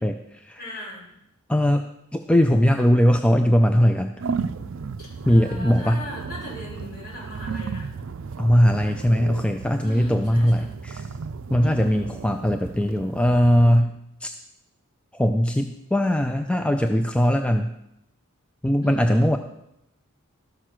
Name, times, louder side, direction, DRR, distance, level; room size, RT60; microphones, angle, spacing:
voice 1, 0.0-0.6 1.5-1.9 2.1-4.1 5.3-6.0 8.4-11.0 11.5-14.3 15.1-17.7 18.6-19.4, equal, 5° left, 6 dB, 0.4 m, -20 dB
voice 2, 0.6-1.1 5.2-7.9 9.8-10.7 11.6-12.1 18.8-19.2, left 1 dB, 45° left, -5 dB, 5.5 m, -39 dB
sound 1, 4.2-13.8, right 5 dB, 65° right, 0.5 m, -34 dB
13.0 x 6.5 x 6.1 m, 0.83 s
head